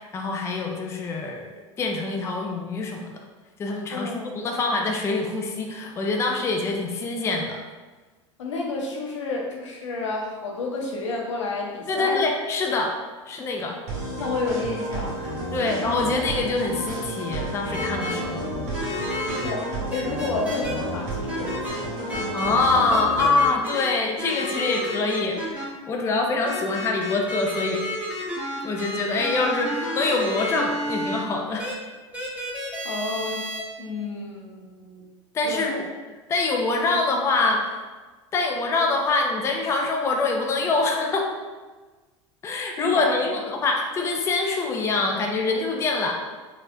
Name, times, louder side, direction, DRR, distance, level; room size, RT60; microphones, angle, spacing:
voice 1, 0.0-3.1 3.6-7.6 11.9-12.9 13.3-13.8 15.5-18.5 22.3-27.8 28.6-31.7 35.3-35.8 36.3-37.7 38.3-41.3 42.4-46.1, left 3 dB, 15° left, 1 dB, 0.4 m, -25 dB
voice 2, 3.9-4.5 8.4-12.2 14.2-15.4 19.3-22.2 32.8-33.4 33.8-35.1 35.4-35.7 42.8-43.3, left 3 dB, 70° left, -1 dB, 0.6 m, -31 dB
sound 1, 13.9-23.5, equal, 45° right, 1.0 m, -31 dB
sound 2, 17.7-18.1 18.7-19.5 19.9-20.7 21.3-21.7 22.1-22.5 22.9-23.9 24.2-25.6 26.5-31.2 31.6-31.7 32.1-33.6, equal, 10° right, 0.9 m, -31 dB
4.3 x 2.1 x 2.5 m, 1.3 s
figure-of-eight pair, 75°, 16 cm